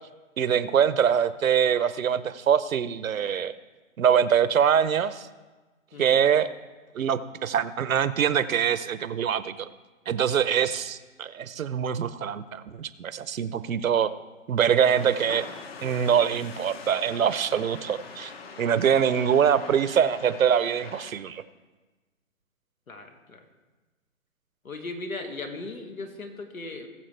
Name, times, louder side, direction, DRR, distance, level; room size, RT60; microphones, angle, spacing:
voice 1, 0.4-3.5 4.0-5.3 6.0-6.5 6.9-9.7 10.1-14.1 14.5-15.4 15.8-18.3 18.6-21.4, right 8 dB, 80° right, 14 dB, 0.8 m, -24 dB
sound 1, 14.8-21.1, left 5 dB, 50° left, 1.4 m, -43 dB
voice 2, 22.9-23.4 24.6-26.9, left 2 dB, 85° left, 5 dB, 2.0 m, -37 dB
19.5 x 7.4 x 3.3 m, 1.2 s
hypercardioid pair, 145°, 40 cm